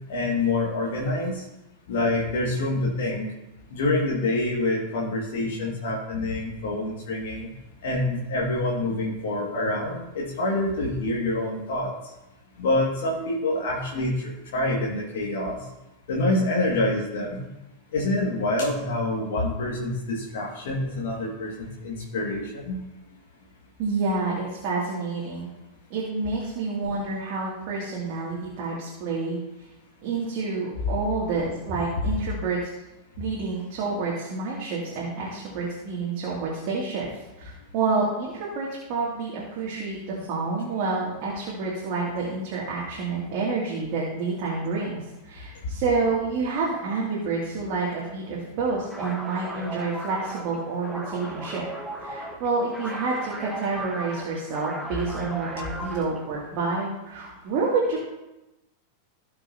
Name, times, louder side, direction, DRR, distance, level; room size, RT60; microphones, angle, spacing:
voice 1, 0.1-1.4 1.9-3.3 3.7-7.5 7.8-11.9 12.6-15.6 16.1-17.5 17.9-22.8, left 2 dB, 55° left, -3 dB, 2.1 m, -26 dB
voice 2, 23.8-25.5 25.9-29.4 30.0-32.7 33.2-45.0 45.2-51.7 52.0-58.0, right 4 dB, 45° right, -5 dB, 2.6 m, -28 dB
sound 1, 48.8-56.3, right 1 dB, ahead, 1.2 m, -37 dB
16.5 x 6.8 x 2.8 m, 0.97 s
figure-of-eight pair, 90°, 0 cm